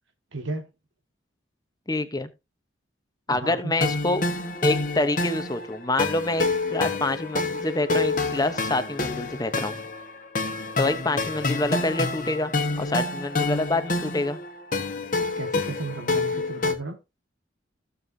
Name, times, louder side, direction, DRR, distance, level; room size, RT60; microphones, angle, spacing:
voice 1, 0.3-0.6 3.3-3.7 15.4-17.0, right 2 dB, 85° right, 1.8 m, -34 dB
voice 2, 1.9-2.3 3.3-4.2 4.6-9.7 10.8-12.5 12.8-14.4, left 2 dB, 20° left, 1.0 m, -26 dB
sound 1, 3.8-16.7, left 3 dB, 45° left, 1.4 m, -28 dB
16.5 x 7.1 x 2.8 m
head